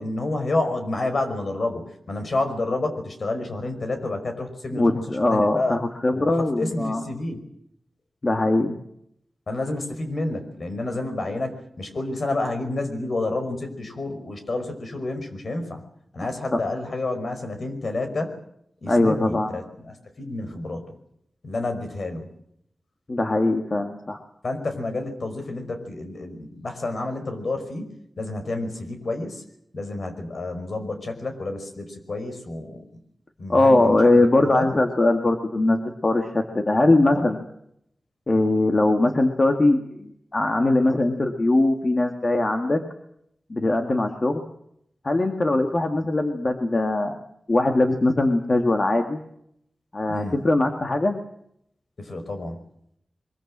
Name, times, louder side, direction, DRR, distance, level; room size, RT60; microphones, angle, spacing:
voice 1, 0.0-5.8 6.1-7.4 9.5-15.8 16.1-18.4 18.8-20.9 21.4-22.3 24.4-29.4 29.7-32.8 33.4-34.7 50.1-50.4 52.0-52.6, left 2 dB, 60° left, 6 dB, 5.4 m, -29 dB
voice 2, 4.7-7.0 8.2-8.7 16.5-16.6 18.9-19.5 23.1-24.2 33.5-37.4 38.3-42.8 43.5-44.4 45.0-47.2 47.5-49.2 49.9-51.2, left 2 dB, 40° left, 4 dB, 2.2 m, -21 dB
23.5 x 22.5 x 7.5 m, 0.73 s
wide cardioid pair, 105°, 0 cm